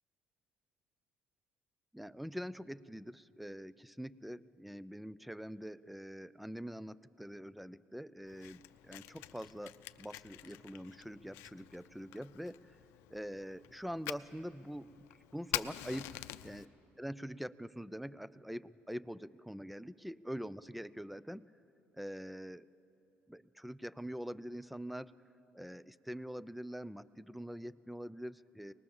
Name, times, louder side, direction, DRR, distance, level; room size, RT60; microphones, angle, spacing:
voice 1, 1.9-12.8 13.1-15.0 15.3-21.5 22.0-22.7 23.3-25.1 25.5-28.7, equal, ahead, 18 dB, 0.4 m, -44 dB
Fire, 8.3-16.7, left 17 dB, 85° left, 0.5 m, -46 dB
24.5 x 20.0 x 7.1 m, 3.0 s
cardioid pair, 100°, 4 cm